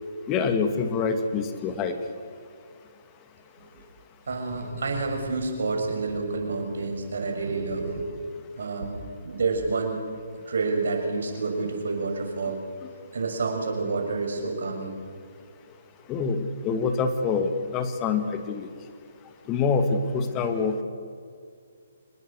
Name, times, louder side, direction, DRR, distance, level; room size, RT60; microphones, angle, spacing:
voice 1, 0.3-1.9 16.1-18.7 19.5-20.8, left 5 dB, 25° left, 7 dB, 2.3 m, -26 dB
voice 2, 4.3-8.1 8.5-8.9 9.2-10.0 10.5-12.6 13.1-15.0, right 3 dB, 65° right, 2 dB, 6.6 m, -28 dB
26.0 x 20.5 x 6.7 m, 2.2 s
figure-of-eight pair, 135°, 0 cm